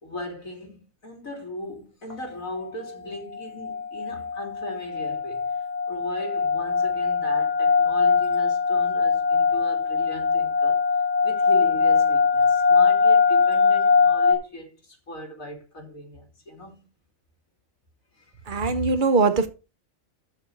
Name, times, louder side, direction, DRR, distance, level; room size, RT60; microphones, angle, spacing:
voice 1, 0.0-5.5 5.9-10.8 11.2-16.9 18.1-18.3, left 1 dB, 85° left, 3.6 m, -37 dB
sound 1, 2.1-2.2 2.5-2.9 3.3-14.3, left 5 dB, 55° left, 2.7 m, -21 dB
voice 2, 18.5-19.5, right 4 dB, 40° right, 1.3 m, -21 dB
13.0 x 5.2 x 4.9 m
omnidirectional pair, 1.4 m